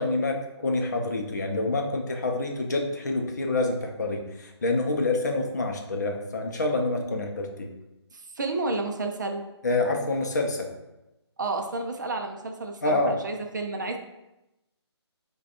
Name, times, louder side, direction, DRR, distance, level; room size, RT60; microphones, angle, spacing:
voice 1, 0.0-7.7 9.6-10.7 12.8-13.1, left 2 dB, 40° left, 3 dB, 0.6 m, -27 dB
voice 2, 8.1-9.5 11.4-14.0, right 3 dB, 40° right, 4 dB, 0.5 m, -31 dB
5.0 x 2.3 x 4.2 m, 0.94 s
hypercardioid pair, 170°, 15 cm